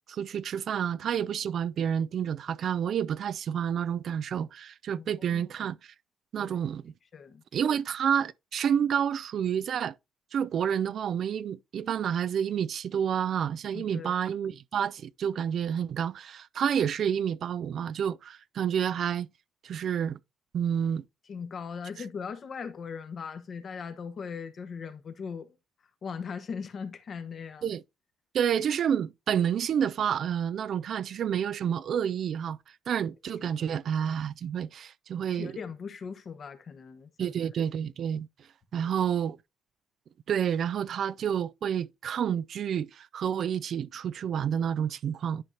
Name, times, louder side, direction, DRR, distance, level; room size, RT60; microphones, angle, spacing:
voice 1, 0.1-5.9 6.3-6.9 7.5-9.9 10.3-19.3 19.6-20.2 20.5-21.0 27.6-27.8 28.3-32.6 32.9-35.5 37.2-38.3 38.7-39.4 40.3-45.4, right 8 dB, 65° right, 0.3 m, -29 dB
voice 2, 5.0-5.5 6.4-6.7 7.1-7.4 13.7-14.2 21.3-25.6 26.0-27.7 33.6-33.8 35.3-37.3 38.8-38.9, left 6 dB, 50° left, 1.2 m, -39 dB
11.0 x 4.9 x 2.8 m
cardioid pair, 90°, 0 cm